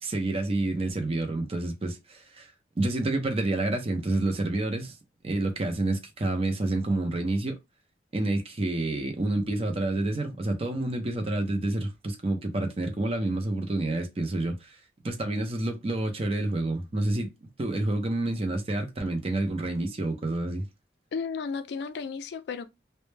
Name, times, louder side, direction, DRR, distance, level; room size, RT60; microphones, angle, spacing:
voice 1, 0.0-2.5 2.8-5.0 5.2-7.6 8.1-14.8 15.0-17.3 17.6-20.7, right 2 dB, 35° right, 0.5 m, -28 dB
voice 2, 21.1-22.7, left 5 dB, 70° left, 0.3 m, -33 dB
2.1 x 2.1 x 3.1 m
head